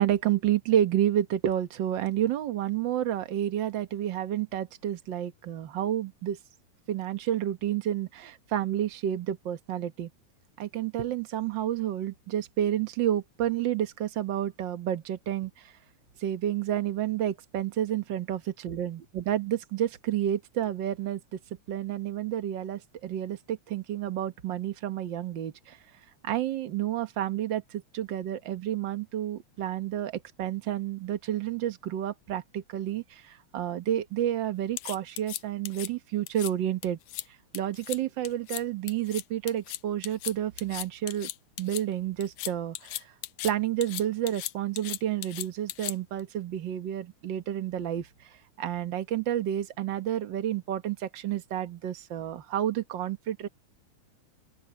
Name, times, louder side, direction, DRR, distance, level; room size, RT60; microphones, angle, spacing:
voice 1, 0.0-6.4 6.9-10.1 10.6-15.7 16.2-21.4 21.7-25.8 26.2-37.0 37.5-41.3 41.6-43.1 43.4-48.1 48.6-53.5, right 11 dB, 55° right, 1.4 m, -30 dB
sound 1, 34.8-35.9 36.3-36.5 36.8-37.3 37.5-38.0 38.3-38.6 38.9-41.8 42.2-43.5 43.8-46.2, left 16 dB, 80° left, 2.1 m, -37 dB
open air
omnidirectional pair, 3.5 m